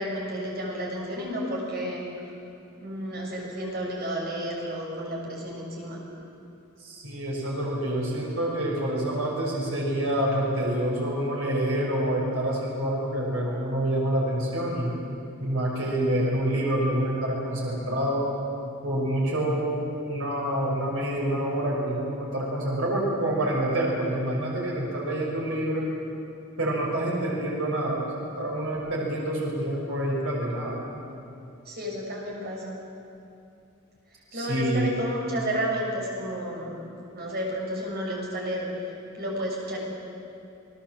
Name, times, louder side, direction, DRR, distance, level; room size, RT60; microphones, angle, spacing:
voice 1, 0.0-2.1 2.8-6.0 31.7-32.8 34.3-36.8 37.1-38.7 39.1-39.8, equal, 50° right, -2 dB, 6.9 m, -31 dB
voice 2, 6.8-14.9 15.4-18.3 18.8-19.7 20.1-25.9 26.6-28.1 28.4-30.8 34.3-34.9, right 1 dB, 70° right, -3 dB, 5.8 m, -27 dB
29.0 x 19.0 x 7.8 m, 2.7 s
head